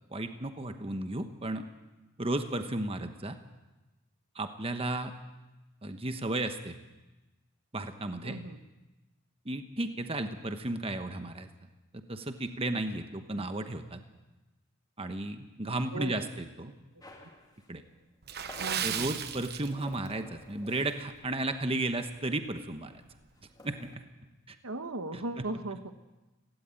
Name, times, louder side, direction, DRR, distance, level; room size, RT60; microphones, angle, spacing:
voice 1, 0.1-1.6 2.2-3.4 4.3-5.1 5.8-6.8 7.7-8.4 9.4-11.5 12.1-14.0 15.0-16.7 17.7-17.8 18.8-22.9 23.6-24.0 24.5-24.6 25.4-25.5, right 2 dB, 25° right, 8 dB, 1.1 m, -34 dB
voice 2, 8.2-8.6 13.3-13.5 15.9-16.3 16.7-16.8 17.2-17.3 18.6-19.2 24.6-25.9, right 2 dB, 80° right, 9 dB, 1.3 m, -38 dB
sound 1, 17.0-21.3 21.5-21.8 22.0-24.0, left 1 dB, 20° left, 2.6 m, -53 dB
Water / Splash splatter, 18.2-20.1 20.4-20.7 21.2-21.4 21.9-22.0, right 8 dB, 50° right, 1.1 m, -35 dB
17.0 x 17.0 x 9.0 m, 1.1 s
head